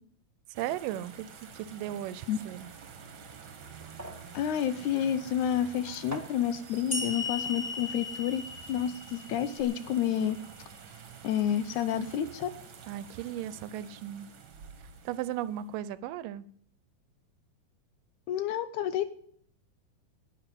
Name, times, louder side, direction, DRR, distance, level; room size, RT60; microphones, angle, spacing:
sound 1, 0.5-15.8, right 6 dB, 50° right, 1.8 m, -49 dB
voice 1, 0.5-1.3 1.5-2.7 12.9-14.3 15.1-16.5, right 12 dB, 85° right, 16 dB, 2.3 m, -36 dB
sound 2, 3.8-9.1 9.3-9.6, equal, 25° right, 0.3 m, -49 dB
voice 2, 4.3-10.4 11.2-12.5 18.3-19.1, left 9 dB, 75° left, 13 dB, 1.9 m, -29 dB
sound 3, 6.9-10.3, left 3 dB, 20° left, 2.1 m, -37 dB
11.0 x 9.2 x 9.8 m, 0.65 s
omnidirectional pair, 3.8 m